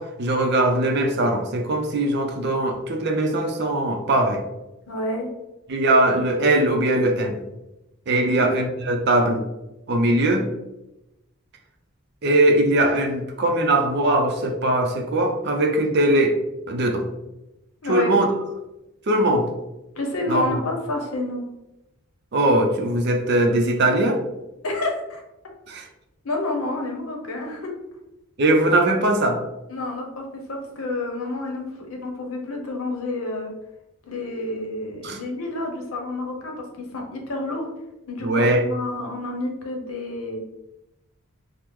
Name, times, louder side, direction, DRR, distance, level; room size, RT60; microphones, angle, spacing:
voice 1, 0.0-4.4 5.7-7.4 8.1-9.4 9.9-10.5 12.2-16.4 16.7-17.1 17.9-18.3 19.1-19.5 20.3-20.4 22.3-24.2 25.7-25.9 28.4-29.4 35.0-35.2 38.2-38.6, right 1 dB, 50° right, 3 dB, 0.5 m, -20 dB
voice 2, 4.9-5.3 8.2-8.5 17.8-18.2 20.0-21.5 24.6-25.2 26.2-27.7 29.7-33.5 34.1-36.5 36.9-37.7 38.1-40.4, left 2 dB, 80° left, 1 dB, 0.7 m, -29 dB
3.5 x 2.0 x 3.0 m, 0.93 s
head